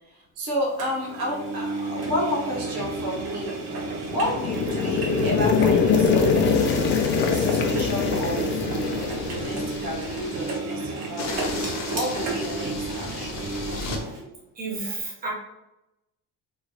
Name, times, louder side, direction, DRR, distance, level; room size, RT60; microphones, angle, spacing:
voice 1, 0.4-3.7 4.0-6.8 7.2-13.4, left 1 dB, 75° right, -2 dB, 1.2 m, -31 dB
Engine, 0.8-14.2, right 3 dB, 45° right, 0.9 m, -32 dB
sound 1, 3.9-10.0, left 5 dB, 35° left, 0.5 m, -23 dB
sound 2, 6.5-10.6 11.2-14.0, left 3 dB, 50° left, 1.0 m, -36 dB
voice 2, 14.1-15.3, right 3 dB, 25° right, -5 dB, 1.3 m, -33 dB
4.2 x 3.1 x 2.3 m, 0.94 s
cardioid pair, 155°, 35 cm